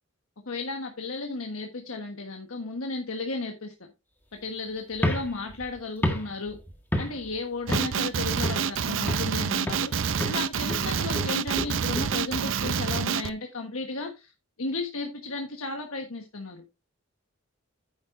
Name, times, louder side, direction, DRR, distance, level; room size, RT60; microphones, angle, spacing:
voice 1, 0.5-3.7 4.3-6.6 7.0-14.3 14.6-16.6, left 3 dB, 90° left, 4 dB, 1.3 m, -34 dB
sound 1, 4.9-7.4 7.7-8.1 8.4-9.4 9.7-10.0 10.2-13.3, equal, 10° left, 1.7 m, -32 dB
Male speech man speaking, 7.7-13.3, right 6 dB, 65° right, 0.6 m, -27 dB
9.7 x 8.8 x 2.6 m, 0.26 s
head